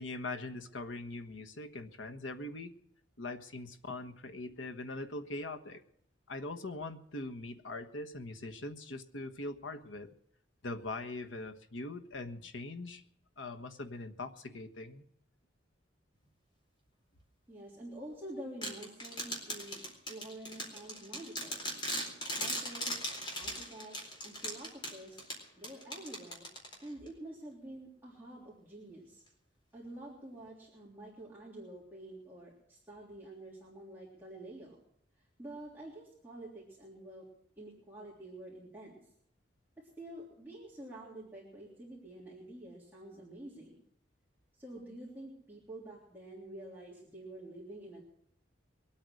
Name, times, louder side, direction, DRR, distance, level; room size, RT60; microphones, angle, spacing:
voice 1, 0.0-2.7 3.2-5.8 6.3-10.1 10.6-13.0 13.4-15.0, left 2 dB, 85° left, 7 dB, 1.3 m, -42 dB
voice 2, 17.5-19.8 20.1-21.7 22.3-23.0 23.4-25.2 25.6-26.5 26.8-29.2 29.7-34.8 35.2-37.3 37.6-39.0 39.8-43.8 44.5-48.0, right 1 dB, 10° right, -6 dB, 3.4 m, -48 dB
sound 1, 18.6-27.1, equal, 25° left, 4.1 m, -39 dB
22.5 x 8.8 x 6.5 m, 0.71 s
head